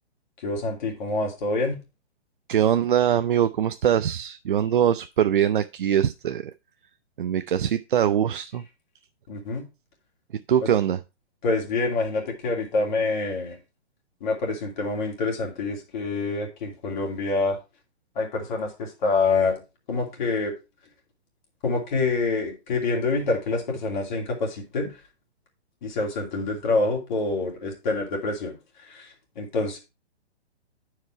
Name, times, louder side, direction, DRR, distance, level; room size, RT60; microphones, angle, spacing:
voice 1, 0.4-1.8 9.3-9.6 10.6-10.7 11.4-13.6 14.2-17.6 18.1-19.6 19.9-20.5 21.6-25.0 25.8-28.5 28.8-29.8, left 3 dB, 45° left, 2.7 m, -26 dB
voice 2, 2.5-6.5 7.2-8.6 10.5-11.0, right 10 dB, 50° right, 0.4 m, -22 dB
9.6 x 4.9 x 4.5 m
hypercardioid pair, 165°, 34 cm